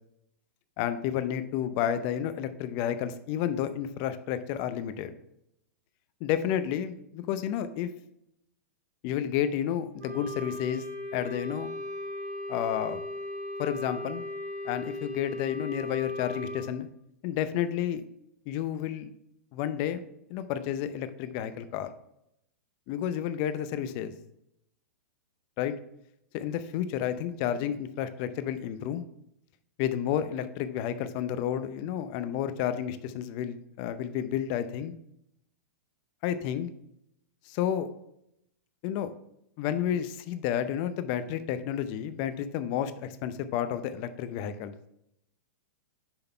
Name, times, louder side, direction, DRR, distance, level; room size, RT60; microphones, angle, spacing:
voice 1, 0.8-5.1 6.2-7.9 9.0-10.9 11.1-11.7 12.5-13.0 13.6-14.2 14.6-16.9 17.2-18.0 18.5-19.1 19.5-20.0 20.3-21.9 22.9-24.1 25.6-25.7 26.3-29.0 29.8-34.9 36.2-36.7 37.5-37.9 38.8-39.1 39.6-44.7, left 10 dB, 45° left, 11 dB, 0.6 m, -31 dB
Wind instrument woodwind instrument, 10.0-16.7, left 1 dB, 75° right, 1.5 m, -37 dB
6.9 x 3.9 x 4.4 m, 0.79 s
hypercardioid pair, 120°, 8 cm